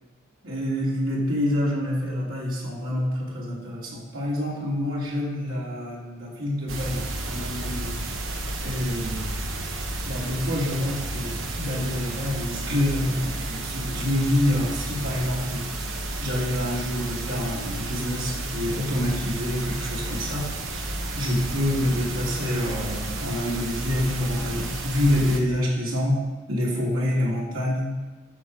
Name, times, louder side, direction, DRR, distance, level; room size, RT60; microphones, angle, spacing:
voice 1, 0.4-8.0 8.6-9.3 10.0-15.7 16.2-26.2 26.5-27.9, left 1 dB, 85° right, -5 dB, 3.1 m, -27 dB
sound 1, 6.7-25.4, right 2 dB, 70° right, 1.2 m, -32 dB
9.8 x 6.6 x 6.6 m, 1.2 s
head